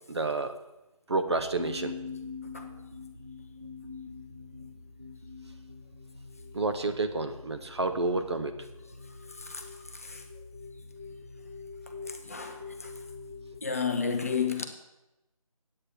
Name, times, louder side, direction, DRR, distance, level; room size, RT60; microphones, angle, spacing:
voice 1, 0.1-0.5 1.1-2.0 6.5-8.6, right 3 dB, 50° right, 0.9 m, -29 dB
sound 1, 1.3-13.6, left 4 dB, 20° right, 0.4 m, -44 dB
voice 2, 9.3-10.2 12.0-12.9 13.6-14.6, left 6 dB, 25° left, 0.6 m, -32 dB
9.7 x 8.7 x 4.9 m
figure-of-eight pair, 160°, 19 cm